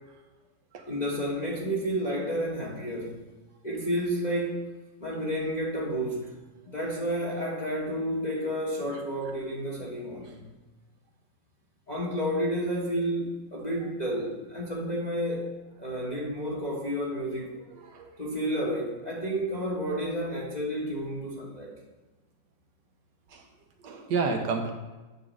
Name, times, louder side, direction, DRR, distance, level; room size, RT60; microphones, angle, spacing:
voice 1, 0.9-3.2 3.6-4.6 5.0-6.3 6.6-10.5 11.9-15.4 15.8-17.6 18.2-21.7, equal, 25° left, -4 dB, 1.2 m, -31 dB
voice 2, 17.7-18.2 23.3-23.5 23.8-24.7, right 4 dB, 65° right, 4 dB, 1.5 m, -31 dB
8.1 x 3.8 x 6.3 m, 1.2 s
omnidirectional pair, 2.1 m